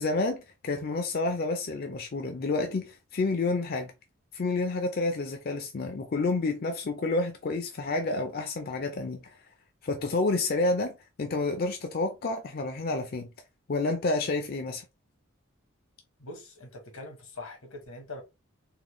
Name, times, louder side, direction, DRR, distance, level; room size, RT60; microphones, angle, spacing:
voice 1, 0.0-3.9 4.3-9.4 9.8-13.3 13.7-14.8, left 3 dB, 45° left, 0.4 m, -29 dB
voice 2, 16.2-18.2, left 2 dB, 90° left, 1.2 m, -43 dB
3.8 x 2.1 x 3.1 m
head